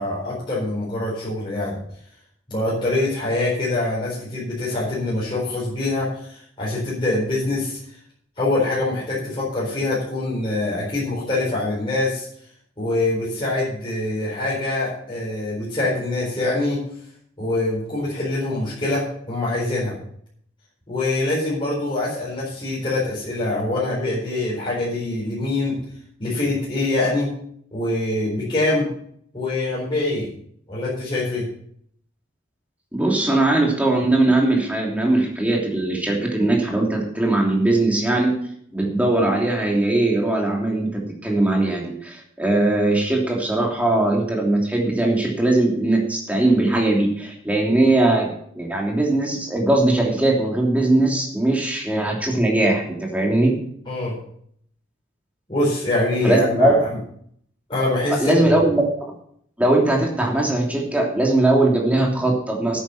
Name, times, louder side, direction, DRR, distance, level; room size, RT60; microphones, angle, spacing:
voice 1, 0.0-1.8 2.5-7.8 8.4-12.3 12.8-16.8 17.4-20.0 20.9-25.8 26.2-27.3 27.7-28.9 29.3-30.3 30.7-31.5 53.9-54.1 55.5-56.8 57.7-58.4, left 2 dB, 25° left, -7 dB, 4.4 m, -24 dB
voice 2, 32.9-38.3 38.7-48.3 48.5-53.6 56.2-56.8 58.1-59.1 59.6-62.8, right 2 dB, 10° right, -1 dB, 3.0 m, -20 dB
10.5 x 9.1 x 6.0 m, 0.65 s
head